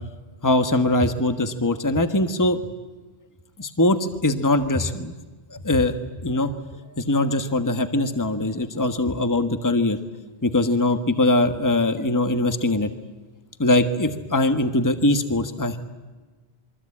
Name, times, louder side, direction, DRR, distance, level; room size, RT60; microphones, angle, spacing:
voice 1, 0.4-2.6 3.6-5.1 5.5-5.9 6.2-6.5 7.0-10.0 10.4-12.9 13.6-15.8, left 2 dB, 15° left, 8 dB, 1.3 m, -21 dB
28.0 x 23.0 x 8.6 m, 1.3 s
omnidirectional pair, 1.1 m